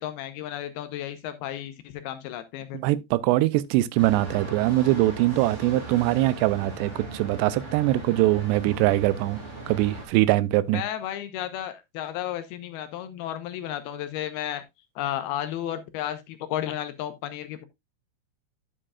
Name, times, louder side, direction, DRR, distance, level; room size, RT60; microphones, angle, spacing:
voice 1, 0.0-2.8 10.7-14.6 15.0-17.7, left 11 dB, 80° left, 2.5 m, -33 dB
voice 2, 2.8-9.4 9.7-10.8, right 16 dB, 85° right, 2.7 m, -22 dB
sound 1, 4.0-10.0, right 2 dB, 20° right, 2.7 m, -38 dB
9.9 x 7.5 x 2.3 m
omnidirectional pair, 4.8 m